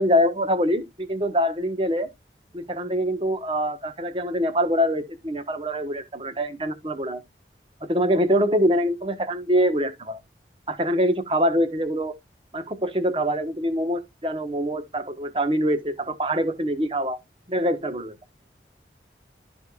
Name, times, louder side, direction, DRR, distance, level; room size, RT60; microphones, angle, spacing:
voice 1, 0.0-2.1 2.5-7.2 7.8-10.2 10.7-12.1 12.5-17.2 17.5-18.2, equal, 30° right, 1.2 m, -24 dB
13.0 x 5.1 x 2.4 m
head